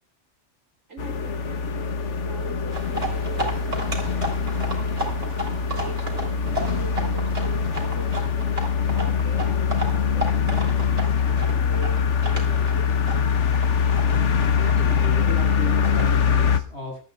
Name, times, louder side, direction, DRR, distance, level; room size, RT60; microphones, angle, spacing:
voice 1, 0.9-4.8 5.7-6.3 6.6-8.5 8.9-10.9 11.2-13.5, right 4 dB, 75° right, 4 dB, 3.4 m, -42 dB
sound 1, 1.0-16.6, left 6 dB, 85° left, 1.4 m, -23 dB
sound 2, 2.7-16.2, equal, 30° right, 4.2 m, -34 dB
voice 2, 14.5-17.0, left 1 dB, 65° left, -1 dB, 7.9 m, -34 dB
23.5 x 13.0 x 2.4 m, 0.40 s
omnidirectional pair, 1.2 m